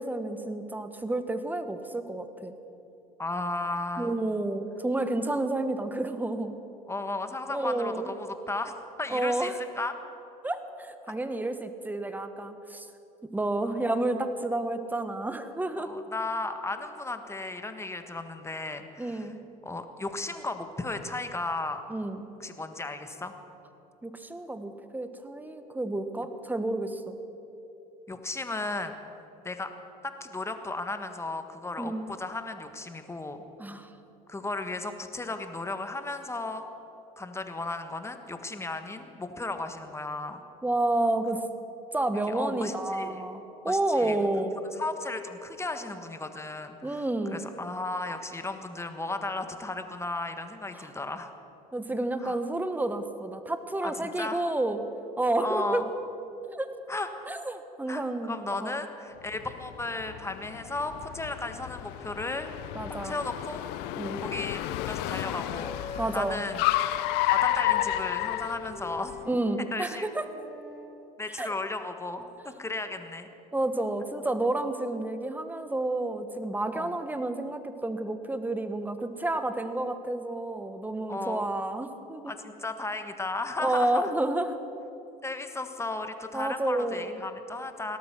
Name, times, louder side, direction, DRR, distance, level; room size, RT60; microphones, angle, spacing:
voice 1, 0.0-2.5 4.0-6.5 7.5-8.1 9.1-9.6 10.4-12.9 13.3-15.9 19.0-19.4 21.9-22.2 24.0-27.2 31.8-32.1 33.6-33.9 40.6-41.4 41.9-44.6 46.8-47.5 50.7-50.9 51.7-54.8 55.2-55.8 56.5-56.7 57.3-58.8 62.7-63.2 63.9-64.2 66.0-66.4 69.3-70.3 71.4-71.5 73.5-82.3 83.6-84.5 86.3-87.2, right 2 dB, 10° right, 9 dB, 1.3 m, -30 dB
voice 2, 3.2-4.2 6.9-8.7 9.0-10.0 13.6-13.9 15.8-19.3 19.6-21.8 22.4-23.4 28.1-29.0 29.4-29.7 30.0-33.4 34.3-36.6 37.2-40.4 42.3-43.2 43.6-44.2 44.8-47.0 47.3-51.3 52.2-52.4 53.8-54.4 55.4-55.9 56.9-57.2 57.9-62.5 63.0-63.6 64.2-64.6 64.9-66.7 67.3-69.2 69.7-70.1 71.2-73.3 76.7-77.0 81.1-81.5 82.2-84.0 85.2-88.0, left 2 dB, 15° left, 8 dB, 1.5 m, -35 dB
Car, 59.3-69.2, left 14 dB, 65° left, 0.5 m, -31 dB
Wind instrument woodwind instrument, 62.4-66.3 66.6-70.9, left 3 dB, 75° right, 4.1 m, -43 dB
17.5 x 13.0 x 6.1 m, 2.9 s
hypercardioid pair, 75°, 18 cm